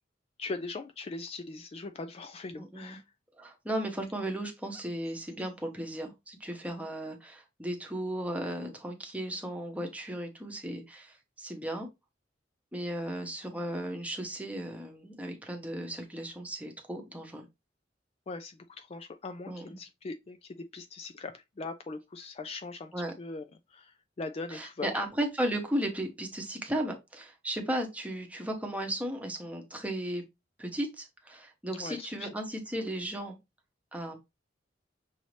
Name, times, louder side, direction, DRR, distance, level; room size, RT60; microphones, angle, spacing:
voice 1, 0.4-3.0 18.3-25.0 31.7-32.3, left 3 dB, 35° left, 0.3 m, -40 dB
voice 2, 2.6-3.0 3.4-11.9 12.7-17.4 19.5-19.8 22.9-23.1 24.5-30.2 30.6-33.4 33.9-34.2, right 1 dB, 10° right, 1.0 m, -35 dB
6.1 x 2.7 x 3.2 m
head